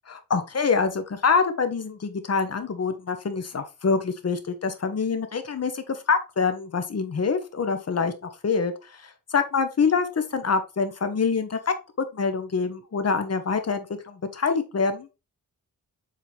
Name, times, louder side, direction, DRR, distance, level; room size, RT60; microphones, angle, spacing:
voice 1, 0.1-15.1, left 5 dB, 45° left, 9 dB, 1.0 m, -26 dB
7.6 x 3.9 x 3.3 m, 0.29 s
wide cardioid pair, 95°, 34 cm